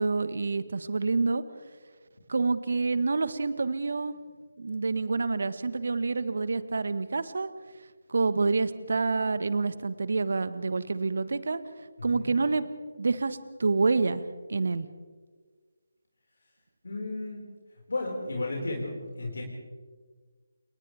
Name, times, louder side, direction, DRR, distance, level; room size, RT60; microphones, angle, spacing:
voice 1, 0.0-1.4 2.3-4.1 4.6-7.5 8.1-11.6 12.0-12.6 13.0-14.2 14.5-14.9, right 4 dB, 60° right, 13 dB, 1.4 m, -27 dB
voice 2, 12.0-12.3 16.8-17.4 17.9-19.4, left 2 dB, 65° left, -2 dB, 5.2 m, -33 dB
29.5 x 28.5 x 3.5 m, 1.5 s
figure-of-eight pair, 155°, 0 cm